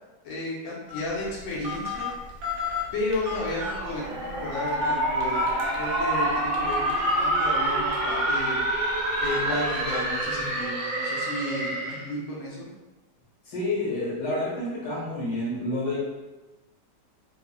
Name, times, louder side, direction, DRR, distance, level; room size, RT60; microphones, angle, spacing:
voice 1, 0.2-2.1 2.9-8.6 9.2-12.7, left 2 dB, 65° left, -6 dB, 1.0 m, -33 dB
Telephone, 0.9-10.7, left 3 dB, 85° right, 1.3 m, -35 dB
sound 1, 3.2-12.1, right 1 dB, 70° right, 1.3 m, -27 dB
voice 2, 13.5-16.0, left 1 dB, 80° left, -7 dB, 1.8 m, -29 dB
3.6 x 2.0 x 2.2 m, 1.1 s
omnidirectional pair, 1.9 m